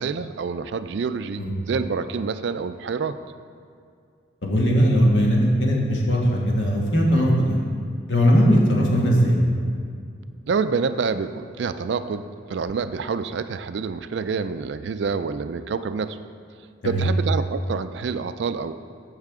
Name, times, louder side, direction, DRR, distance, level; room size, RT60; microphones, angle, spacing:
voice 1, 0.0-3.2 10.5-16.2 16.8-18.7, right 5 dB, 65° right, 11 dB, 0.3 m, -27 dB
voice 2, 4.4-7.6 8.1-9.4 16.8-17.1, equal, 70° left, -2 dB, 1.6 m, -19 dB
15.0 x 5.7 x 3.6 m, 2.3 s
head